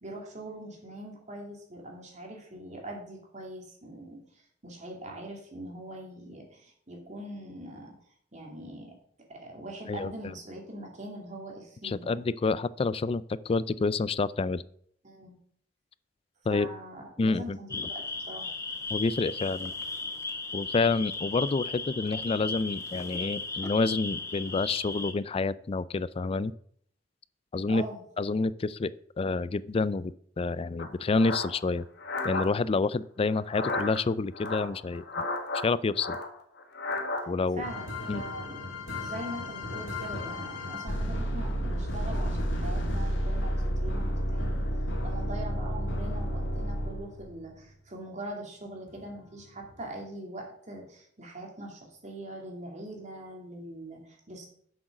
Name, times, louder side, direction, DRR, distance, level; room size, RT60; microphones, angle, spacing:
voice 1, 0.0-7.9 8.3-9.0 9.3-12.2 15.0-15.4 16.5-18.5 27.7-28.0 37.6-38.6 38.9-54.5, right 1 dB, 40° right, 0 dB, 2.5 m, -42 dB
voice 2, 11.8-14.6 16.5-16.7 17.2-17.9 18.9-19.7 20.5-26.5 27.5-27.8 28.2-28.9 29.2-31.8 32.2-35.2 35.6-36.2 37.3-37.6 38.1-38.2, left 3 dB, 30° left, 17 dB, 0.3 m, -28 dB
sound 1, 17.7-25.1, left 3 dB, 15° left, 1.0 m, -36 dB
sound 2, 30.8-32.5 33.4-34.0 34.3-35.7 35.9-37.2, left 2 dB, 60° left, 1.5 m, -33 dB
sound 3, 37.6-47.4 48.9-49.1 49.6-49.8, equal, 80° left, 2.4 m, -31 dB
7.9 x 6.3 x 6.0 m, 0.64 s
head